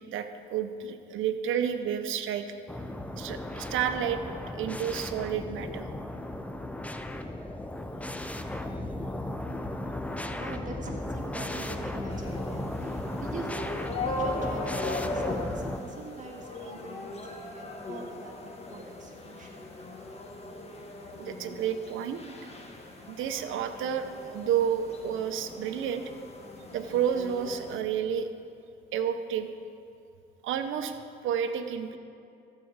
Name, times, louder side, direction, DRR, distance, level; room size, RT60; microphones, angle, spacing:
voice 1, 0.1-2.5 3.2-4.2 4.5-5.9 21.2-22.2 23.1-26.0 26.7-28.3 28.9-29.5 30.4-31.0 31.2-32.0, right 8 dB, 80° right, 9 dB, 0.7 m, -30 dB
sound 1, 2.7-15.8, left 1 dB, 5° left, 0.6 m, -36 dB
voice 2, 10.3-19.7 27.7-27.8, right 2 dB, 40° right, 0 dB, 1.9 m, -43 dB
sound 2, 12.1-27.8, left 2 dB, 30° left, 1.4 m, -39 dB
13.5 x 4.6 x 8.0 m, 2.5 s
cardioid pair, 90°, 20 cm